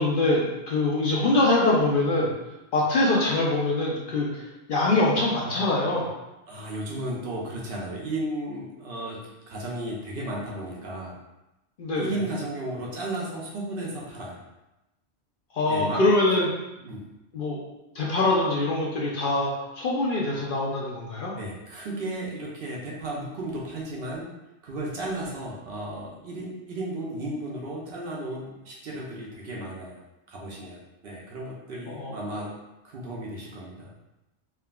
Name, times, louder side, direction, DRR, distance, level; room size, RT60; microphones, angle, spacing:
voice 1, 0.0-2.3 2.7-6.1 11.8-12.1 15.5-16.5 17.3-17.6 17.9-19.5 19.8-21.3 31.9-32.1, left 2 dB, 55° left, -4 dB, 0.7 m, -23 dB
voice 2, 6.5-11.2 12.0-14.4 15.7-16.0 16.8-17.0 21.3-24.3 24.6-30.0 30.3-32.6 32.8-33.9, right 1 dB, 65° right, -3 dB, 0.7 m, -34 dB
3.5 x 2.2 x 2.2 m, 0.95 s
omnidirectional pair, 1.2 m